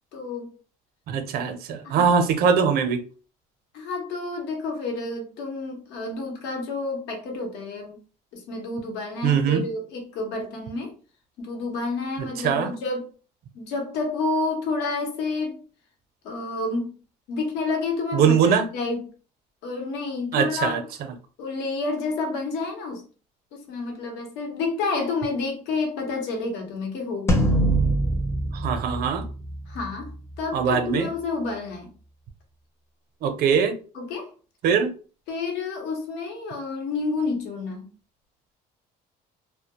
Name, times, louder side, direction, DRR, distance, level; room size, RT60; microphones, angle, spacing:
voice 1, 0.1-0.5 1.8-2.1 3.7-8.0 8.3-10.9 11.4-13.1 13.5-15.6 16.2-16.9 17.3-19.1 19.6-20.8 21.4-23.0 23.5-27.5 29.7-31.9 33.9-34.3 35.3-37.9, left 3 dB, 80° left, 0.9 m, -29 dB
voice 2, 1.1-3.0 9.2-9.6 12.2-12.7 18.1-18.7 20.3-21.1 28.5-29.3 30.5-31.1 33.2-33.8 34.6-34.9, right 6 dB, 65° right, 0.5 m, -22 dB
sound 1, 27.3-29.8, right 1 dB, 15° left, 0.5 m, -23 dB
2.2 x 2.1 x 2.8 m
cardioid pair, 120°, 17 cm